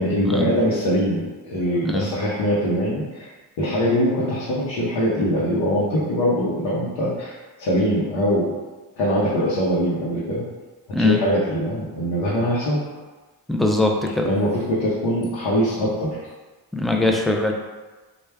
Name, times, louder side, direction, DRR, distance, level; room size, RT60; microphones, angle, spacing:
voice 1, 0.0-3.3 3.6-8.5 9.0-10.4 11.0-12.8 14.2-16.3, equal, 75° left, -7 dB, 0.8 m, -22 dB
voice 2, 13.5-14.3 16.7-17.5, left 2 dB, ahead, 1 dB, 0.4 m, -21 dB
3.3 x 2.3 x 3.3 m, 1.3 s
supercardioid pair, 55°, 42 cm